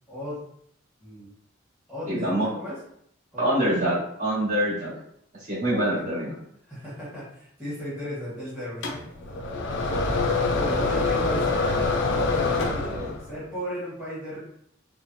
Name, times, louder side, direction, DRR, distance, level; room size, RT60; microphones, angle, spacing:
voice 1, 0.1-0.4 1.0-1.3 1.9-2.8 3.3-3.5 5.7-6.0 6.6-9.6 10.2-11.8 12.3-14.4, equal, 5° right, -11 dB, 1.1 m, -36 dB
voice 2, 2.1-2.5 3.4-4.9 5.5-6.3 12.9-13.0, right 1 dB, 40° right, -9 dB, 1.4 m, -25 dB
sound 1, 8.8-13.3, left 3 dB, 60° left, 0.4 m, -25 dB
3.2 x 2.1 x 2.5 m, 0.69 s
head